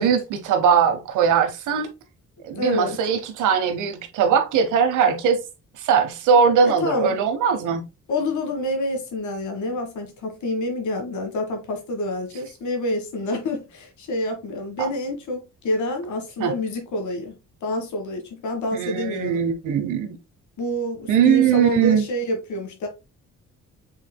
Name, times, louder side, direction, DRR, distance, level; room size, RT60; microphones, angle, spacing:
voice 1, 0.0-1.9 2.4-5.4 5.8-7.8 14.8-14.9 16.4-16.5 18.7-20.2 21.1-22.0, right 7 dB, 85° right, 1.0 m, -20 dB
voice 2, 2.5-3.0 6.6-7.2 8.1-19.4 20.6-22.9, left 1 dB, 75° left, 1.6 m, -27 dB
5.6 x 3.9 x 2.2 m
cardioid pair, 90°, 30 cm